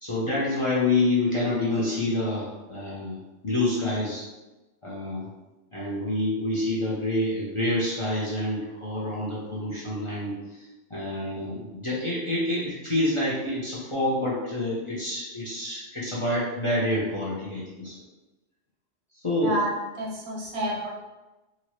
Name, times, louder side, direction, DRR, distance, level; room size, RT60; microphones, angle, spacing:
voice 1, 0.0-3.2 3.4-4.2 4.8-5.3 5.7-17.9 19.1-19.5, left 1 dB, 35° left, -7 dB, 0.6 m, -27 dB
voice 2, 19.4-20.9, right 1 dB, 65° right, -1 dB, 0.8 m, -29 dB
2.9 x 2.6 x 3.0 m, 1.1 s
omnidirectional pair, 1.2 m